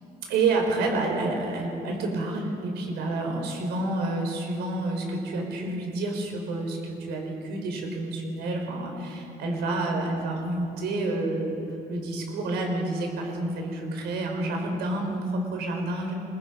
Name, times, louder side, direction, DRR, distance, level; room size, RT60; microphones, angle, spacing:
voice 1, 0.3-11.6 11.9-16.1, right 2 dB, 80° right, 2 dB, 5.1 m, -29 dB
25.5 x 22.5 x 5.4 m, 2.8 s
cardioid pair, 110°, 17 cm